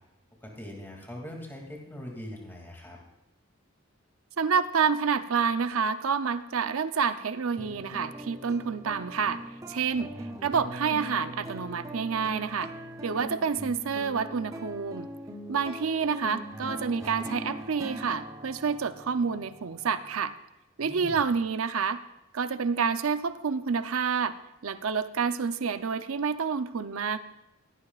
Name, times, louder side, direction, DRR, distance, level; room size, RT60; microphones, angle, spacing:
voice 1, 0.4-3.0 9.9-10.5 20.8-21.2, equal, 10° left, -1 dB, 2.4 m, -42 dB
voice 2, 4.4-9.4 9.7-10.1 10.4-12.7 13.0-15.1 15.5-20.3 20.8-22.0 22.3-24.4 24.6-27.2, right 6 dB, 85° right, 12 dB, 0.6 m, -28 dB
sound 1, 7.6-20.3, right 1 dB, 15° right, 0.8 m, -41 dB
17.0 x 16.0 x 2.4 m, 0.94 s
head